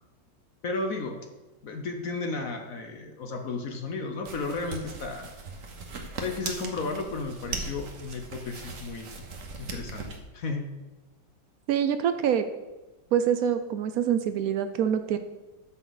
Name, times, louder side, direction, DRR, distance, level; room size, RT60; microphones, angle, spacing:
voice 1, 0.6-1.3 1.6-5.3 6.2-9.1 9.6-10.1 10.3-10.7, left 3 dB, 55° left, 4 dB, 1.1 m, -33 dB
Cloth Grabbing, 4.2-10.2, right 3 dB, 50° right, 1.3 m, -39 dB
voice 2, 11.7-12.4 13.1-15.2, right 9 dB, 80° right, 9 dB, 0.8 m, -25 dB
13.0 x 5.6 x 4.0 m, 1.1 s
omnidirectional pair, 2.1 m